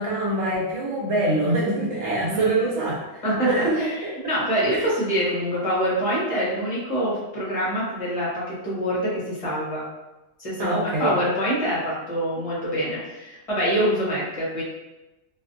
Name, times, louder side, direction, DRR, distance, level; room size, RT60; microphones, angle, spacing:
voice 1, 0.0-3.2 3.5-3.8 4.0-4.1 4.7-4.9 10.6-11.1, right 2 dB, 70° right, -3 dB, 1.0 m, -24 dB
voice 2, 3.2-3.9 4.2-9.8 10.4-14.6, equal, 30° left, -7 dB, 0.9 m, -25 dB
2.4 x 2.3 x 2.6 m, 1.0 s
omnidirectional pair, 1.3 m